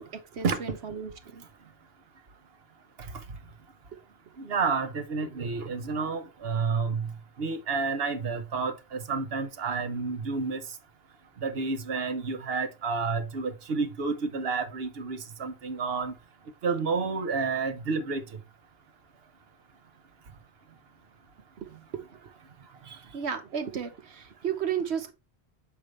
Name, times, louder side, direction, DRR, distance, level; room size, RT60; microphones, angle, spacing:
voice 1, 0.0-1.4 21.6-21.7 21.9-22.0 23.1-25.1, right 8 dB, 90° right, 1.3 m, -33 dB
voice 2, 4.4-7.1 7.4-10.6 11.4-16.1 16.6-18.2, right 4 dB, 70° right, 1.1 m, -30 dB
7.2 x 5.2 x 3.2 m
omnidirectional pair, 1.1 m